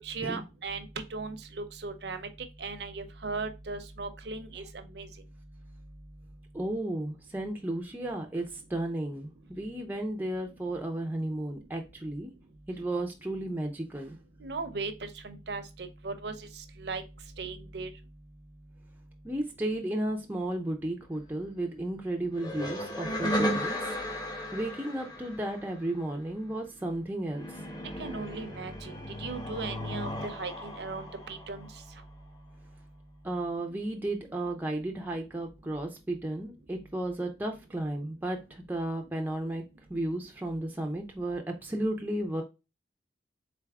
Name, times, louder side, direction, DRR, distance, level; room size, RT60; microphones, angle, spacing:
voice 1, 0.0-2.3 2.6-5.1 14.4-16.3 16.8-17.0 17.4-17.9 28.0-31.7, right 4 dB, 70° right, 8 dB, 0.7 m, -37 dB
voice 2, 6.5-12.3 12.7-14.2 19.2-23.8 24.1-24.2 24.5-27.6 33.2-39.6 39.9-42.4, right 1 dB, 10° right, 2 dB, 0.5 m, -33 dB
sound 1, 22.3-26.0 27.3-32.0, equal, 25° left, 0.9 m, -35 dB
4.0 x 3.4 x 3.5 m, 0.27 s
head